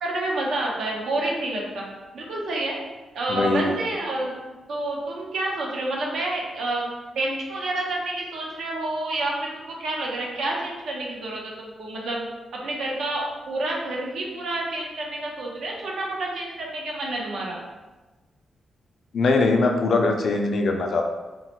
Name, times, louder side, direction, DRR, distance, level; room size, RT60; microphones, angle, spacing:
voice 1, 0.0-1.8 2.1-2.8 3.1-4.3 4.7-6.9 7.2-12.2 12.5-17.6, right 2 dB, 80° right, -2 dB, 0.6 m, -29 dB
voice 2, 3.3-3.7 19.1-21.0, left 3 dB, 60° left, 3 dB, 0.4 m, -21 dB
3.0 x 2.1 x 2.9 m, 1.2 s
cardioid pair, 115°, 0 cm